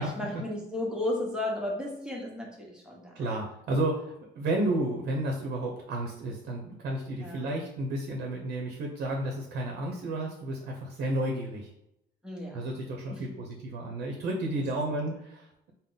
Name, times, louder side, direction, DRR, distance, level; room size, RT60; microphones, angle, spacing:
voice 1, 0.0-3.4 7.2-7.5 12.2-12.7 13.1-13.4, left 1 dB, 5° right, -2 dB, 1.0 m, -34 dB
voice 2, 3.1-11.7 12.5-15.7, right 1 dB, 75° right, 1 dB, 0.7 m, -32 dB
3.7 x 2.1 x 3.8 m, 0.82 s
cardioid pair, 110°, 17 cm